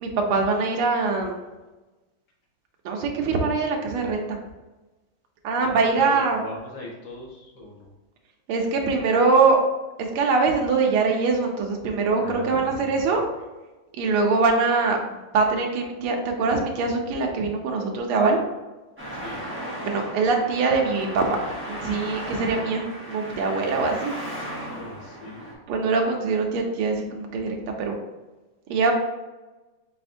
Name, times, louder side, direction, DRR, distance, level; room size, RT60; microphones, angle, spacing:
voice 1, 0.0-1.4 2.8-4.4 5.4-6.4 8.5-9.6 10.0-13.2 14.0-15.0 15.3-18.4 19.8-21.4 21.7-24.2 25.7-28.0 28.7-28.9, right 4 dB, 85° right, 1 dB, 1.6 m, -23 dB
voice 2, 6.0-7.9 12.1-12.9 19.1-19.4 24.8-25.4, left 2 dB, 55° left, -3 dB, 1.7 m, -39 dB
Traffic noise roadway noise, 19.0-25.5, equal, 10° right, 0.7 m, -35 dB
4.8 x 4.2 x 2.6 m, 1.1 s
omnidirectional pair, 2.4 m